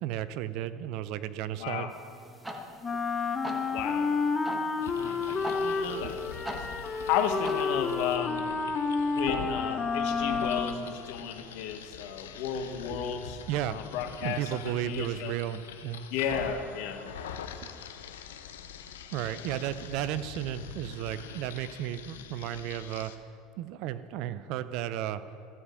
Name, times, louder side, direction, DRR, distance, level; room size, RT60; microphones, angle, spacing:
voice 1, 0.0-1.9 4.9-5.0 6.0-6.2 7.8-7.9 12.9-13.0 13.5-13.8 14.2-16.1 17.6-17.7 19.1-23.3 23.6-25.2, right 12 dB, 60° right, 14 dB, 0.4 m, -34 dB
voice 2, 1.6-1.9 3.7-4.1 5.0-6.6 6.9-8.5 9.1-13.4 13.7-15.3 16.1-17.0 17.4-17.5 19.3-19.5, left 8 dB, 65° left, 7 dB, 0.9 m, -33 dB
sound 1, 1.9-8.2, equal, 10° right, 1.3 m, -43 dB
Wind instrument woodwind instrument, 2.8-11.0, left 4 dB, 30° left, 0.7 m, -30 dB
sound 2, 4.8-23.2, left 8 dB, 80° left, 0.6 m, -44 dB
14.0 x 5.0 x 6.3 m, 2.4 s
hypercardioid pair, 80°, 0 cm